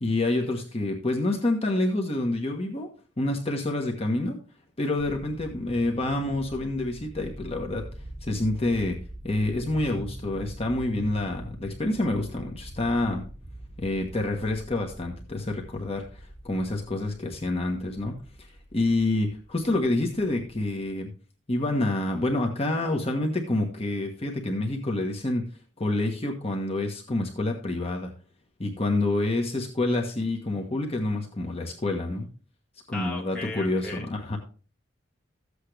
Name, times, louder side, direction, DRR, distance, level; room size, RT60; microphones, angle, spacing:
voice 1, 0.0-2.9 3.2-4.4 4.8-7.9 8.2-9.0 9.2-13.3 13.8-21.1 21.5-25.5 25.8-28.1 28.6-32.3 32.9-34.4, left 2 dB, 35° left, 2 dB, 1.3 m, -27 dB
sound 1, 5.0-20.9, right 1 dB, 50° right, 3.9 m, -44 dB
voice 2, 32.9-34.1, left 2 dB, 5° left, -2 dB, 1.9 m, -36 dB
14.0 x 8.2 x 3.4 m, 0.39 s
head